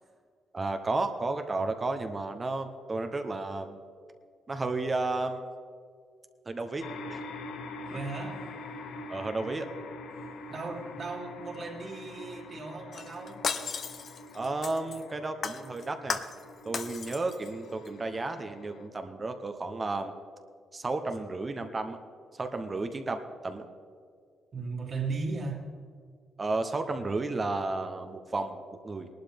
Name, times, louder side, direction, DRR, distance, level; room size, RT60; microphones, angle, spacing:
voice 1, 0.5-3.8 4.5-5.4 6.5-6.8 7.1-7.2 9.1-9.7 14.3-16.2 16.6-20.1 20.7-22.0 22.4-23.7 26.4-29.1, right 3 dB, 30° right, 6 dB, 0.8 m, -32 dB
sound 1, 6.8-18.9, left 2 dB, 80° left, 1.0 m, -44 dB
voice 2, 7.9-8.4 10.5-13.4 17.0-17.1 24.5-25.6, right 3 dB, 45° right, 0 dB, 2.3 m, -36 dB
Shatter, 12.9-15.0 15.4-16.4 16.7-17.5 17.8-17.9, left 6 dB, 50° left, 0.8 m, -35 dB
19.0 x 11.5 x 3.5 m, 2.2 s
cardioid pair, 105°, 0 cm